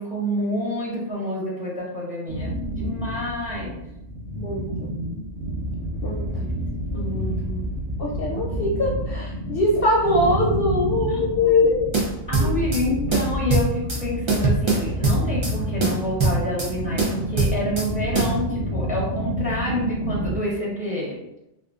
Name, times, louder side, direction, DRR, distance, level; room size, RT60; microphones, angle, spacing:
voice 1, 0.0-3.8 6.3-6.5 6.9-7.7 11.1-11.5 12.3-21.2, left 1 dB, 10° right, -5 dB, 0.7 m, -28 dB
sound 1, 2.3-20.4, equal, 75° right, 0.9 m, -29 dB
voice 2, 4.3-4.7 6.0-6.3 6.9-7.0 8.0-11.8 12.4-12.5, left 2 dB, 60° left, -2 dB, 0.7 m, -22 dB
sound 2, 11.9-12.8 13.1-14.0 14.3-15.5 15.8-16.7 17.0-17.9 18.1-18.3, right 3 dB, 40° right, 0.4 m, -22 dB
3.7 x 2.4 x 2.3 m, 0.87 s
omnidirectional pair, 1.2 m